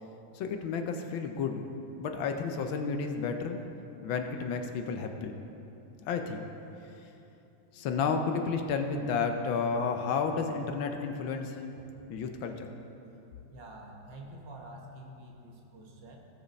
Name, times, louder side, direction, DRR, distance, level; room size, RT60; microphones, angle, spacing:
voice 1, 0.3-1.6 2.0-3.6 4.0-5.4 6.0-6.5 7.7-11.6 12.1-12.7, left 5 dB, 75° left, 5 dB, 1.4 m, -31 dB
voice 2, 13.5-16.2, right 1 dB, 60° right, 0 dB, 1.8 m, -47 dB
16.5 x 6.4 x 4.1 m, 2.8 s
omnidirectional pair, 2.3 m